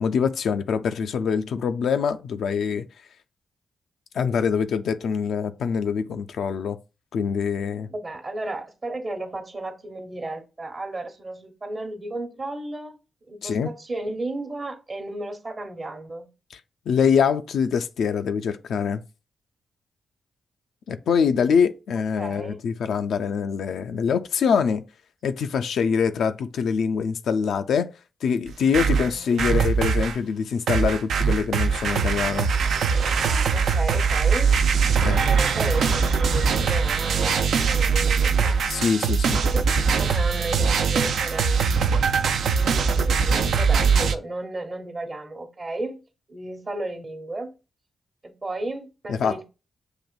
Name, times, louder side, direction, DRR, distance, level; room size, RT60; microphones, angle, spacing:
voice 1, 0.0-2.8 4.1-6.8 7.1-7.9 13.4-13.7 16.9-19.0 20.9-24.8 25.2-27.9 28.2-32.5 35.0-35.2 38.7-39.4 49.1-49.4, left 6 dB, 75° left, 0.3 m, -24 dB
voice 2, 7.9-13.0 13.2-16.3 22.2-22.6 29.0-29.5 33.5-34.6 35.2-38.6 39.5-41.6 42.5-46.0 46.3-47.5 48.2-49.4, right 2 dB, 45° right, 1.0 m, -34 dB
sound 1, 28.5-30.2 30.7-44.1, right 5 dB, 75° right, 0.3 m, -22 dB
6.1 x 2.5 x 2.3 m
supercardioid pair, 40°, 0 cm